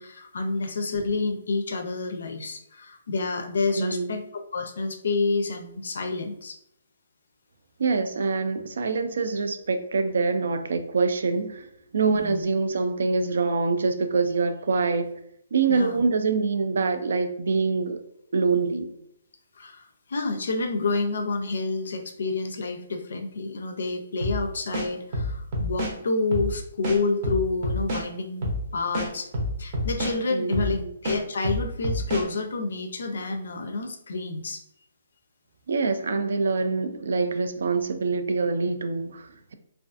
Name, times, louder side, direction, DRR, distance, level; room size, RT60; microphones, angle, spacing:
voice 1, 0.0-4.2 4.5-6.6 12.1-12.4 15.7-16.0 19.6-29.3 29.6-34.6, left 3 dB, 70° left, 5 dB, 0.4 m, -29 dB
voice 2, 3.8-4.2 7.8-11.7 11.9-15.1 15.5-18.0 18.3-18.9 30.3-30.9 35.7-39.5, right 4 dB, 70° right, 8 dB, 0.3 m, -25 dB
sound 1, 24.2-24.4 24.7-25.9 26.3-26.5 26.8-28.0 28.4-28.6 28.9-30.2 30.5-30.7 31.0-32.3, left 1 dB, 35° right, 0.6 m, -27 dB
2.3 x 2.3 x 2.4 m, 0.76 s
hypercardioid pair, 170°, 0 cm